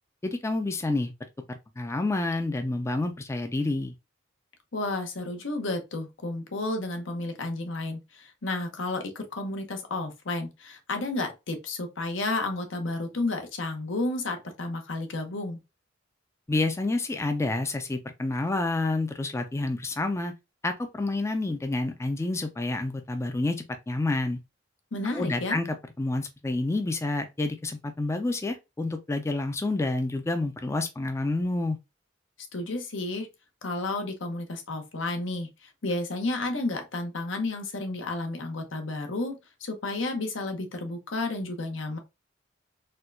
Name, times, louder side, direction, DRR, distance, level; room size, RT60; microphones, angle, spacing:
voice 1, 0.2-1.1 1.5-3.9 16.5-20.3 20.6-24.4 25.1-31.8, left 2 dB, 15° left, 0.3 m, -29 dB
voice 2, 4.7-15.6 24.9-25.6 32.5-33.3 33.6-42.0, left 2 dB, 85° left, 0.9 m, -32 dB
4.3 x 2.3 x 2.5 m
head